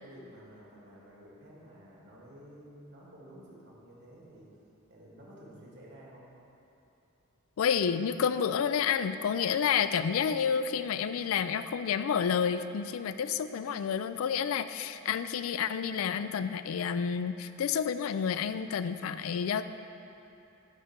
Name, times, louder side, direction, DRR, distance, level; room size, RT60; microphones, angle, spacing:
voice 1, 0.0-4.5 4.9-6.2, equal, 55° right, -4 dB, 1.7 m, -52 dB
voice 2, 7.6-19.6, left 7 dB, 75° left, 12 dB, 0.3 m, -29 dB
9.9 x 3.7 x 7.1 m, 2.8 s
head